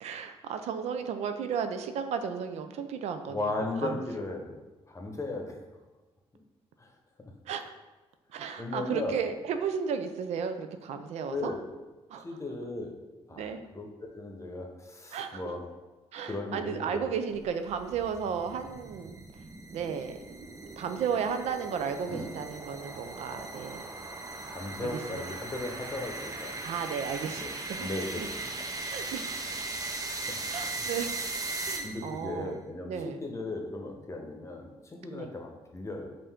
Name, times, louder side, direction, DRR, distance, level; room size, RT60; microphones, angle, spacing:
voice 1, 0.0-3.5 3.8-4.0 7.5-7.7 8.3-11.5 12.1-12.3 13.4-13.6 15.1-15.5 16.1-19.2 19.7-20.2 20.8-23.9 24.8-25.3 26.6-27.9 28.2-28.3 28.9-29.3 30.5-31.1 31.6-32.6 32.9-33.2 35.1-35.3, right 7 dB, 80° right, 8 dB, 0.4 m, -34 dB
voice 2, 3.3-4.5 4.9-5.5 6.8-6.9 7.2-7.3 8.6-9.2 11.3-11.6 12.2-12.9 13.3-15.7 16.3-17.0 22.1-22.2 23.3-23.5 24.5-26.6 27.3-27.5 27.8-28.7 29.9-30.8 31.8-36.1, left 2 dB, 25° left, 2 dB, 1.0 m, -37 dB
sound 1, 17.4-32.3, right 2 dB, 30° right, 0.6 m, -38 dB
5.4 x 2.6 x 3.5 m, 1.2 s
cardioid pair, 65°, 11 cm